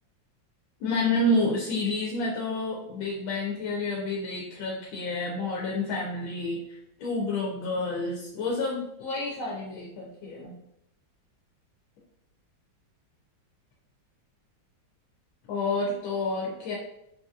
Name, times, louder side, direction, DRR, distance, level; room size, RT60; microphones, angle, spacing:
voice 1, 0.8-10.5 15.5-16.8, left 2 dB, 85° left, -3 dB, 1.4 m, -29 dB
3.8 x 2.7 x 2.3 m, 0.81 s
omnidirectional pair, 2.1 m